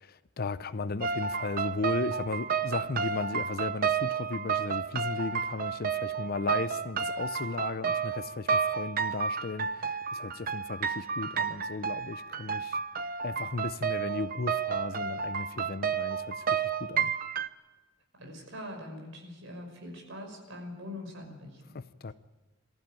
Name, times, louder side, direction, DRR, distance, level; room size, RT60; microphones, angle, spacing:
voice 1, 0.0-12.8 13.2-17.1 21.7-22.1, left 3 dB, 50° left, 14 dB, 0.6 m, -35 dB
sound 1, 1.0-17.5, right 6 dB, 45° right, 0.7 m, -31 dB
voice 2, 18.2-21.8, left 1 dB, 70° right, 2 dB, 5.8 m, -43 dB
23.0 x 15.0 x 9.1 m, 1.2 s
head